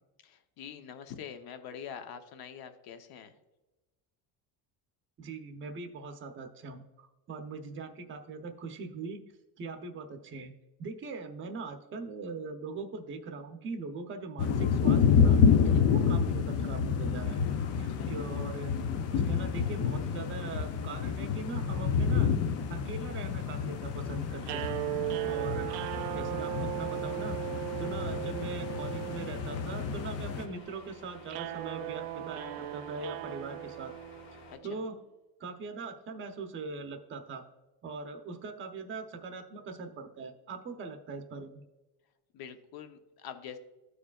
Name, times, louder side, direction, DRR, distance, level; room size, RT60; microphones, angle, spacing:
voice 1, 0.2-3.3 15.7-15.8 17.9-18.1 34.5-34.8 42.3-43.6, left 8 dB, 50° left, 8 dB, 0.8 m, -45 dB
voice 2, 5.2-9.2 9.6-10.5 10.8-15.4 15.8-17.4 17.8-18.7 19.1-22.3 22.7-24.7 25.2-25.7 26.1-27.4 27.8-33.9 34.6-35.0 35.4-37.4 37.8-41.6, right 4 dB, 25° right, 5 dB, 0.7 m, -41 dB
sound 1, 14.4-30.5, left 6 dB, 35° left, 0.4 m, -29 dB
sound 2, 17.2-34.6, left 3 dB, 90° left, 2.3 m, -53 dB
sound 3, 24.4-34.6, right 17 dB, 90° right, 0.6 m, -38 dB
14.0 x 4.9 x 2.3 m, 1.1 s
cardioid pair, 135°, 47 cm